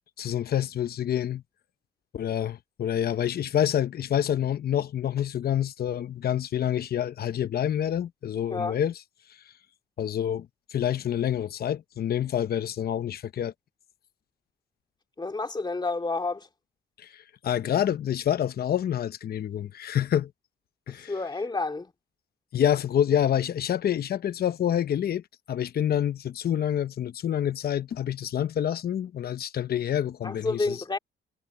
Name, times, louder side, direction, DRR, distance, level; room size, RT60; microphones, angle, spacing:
voice 1, 0.2-1.4 2.1-9.0 9.3-9.5 10.0-13.5 17.0-20.3 20.9-21.1 22.5-30.8, left 10 dB, 50° left, 0.8 m, -27 dB
voice 2, 15.2-16.5 21.1-21.9 30.2-31.0, left 3 dB, 20° left, 2.4 m, -29 dB
cardioid pair, 90°, 20 cm